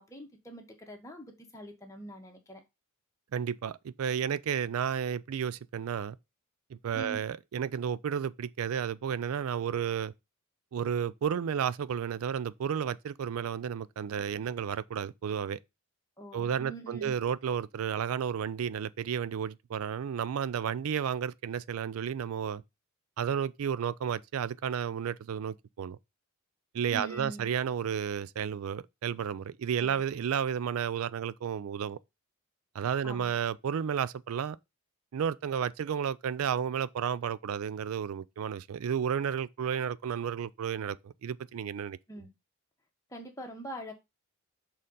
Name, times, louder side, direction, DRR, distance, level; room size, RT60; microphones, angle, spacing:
voice 1, 0.0-2.6 6.9-7.2 16.2-17.1 26.9-27.5 29.8-30.0 33.0-33.3 42.1-42.3 43.1-43.9, right 1 dB, 15° left, 1.4 m, -43 dB
voice 2, 3.3-6.2 6.7-10.1 10.7-15.6 16.3-22.6 23.2-26.0 26.7-32.0 32.7-34.6 35.1-42.0, right 8 dB, 75° right, 0.4 m, -32 dB
6.5 x 3.8 x 5.4 m
head